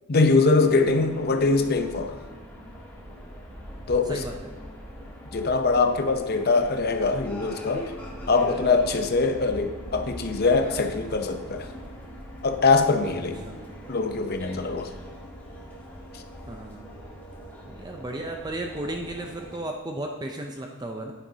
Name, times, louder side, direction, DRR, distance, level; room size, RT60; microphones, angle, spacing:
voice 1, 0.1-2.2 3.9-4.2 5.3-7.9 8.3-11.7 12.4-13.4 13.9-14.9 16.1-16.2, left 3 dB, 45° left, 7 dB, 0.7 m, -23 dB
sound 1, 0.6-19.6, equal, 10° left, 1.6 m, -41 dB
voice 2, 13.1-13.6 16.5-16.9 17.6-21.1, right 1 dB, 20° right, 2 dB, 0.5 m, -35 dB
9.9 x 9.1 x 2.8 m, 1.5 s
head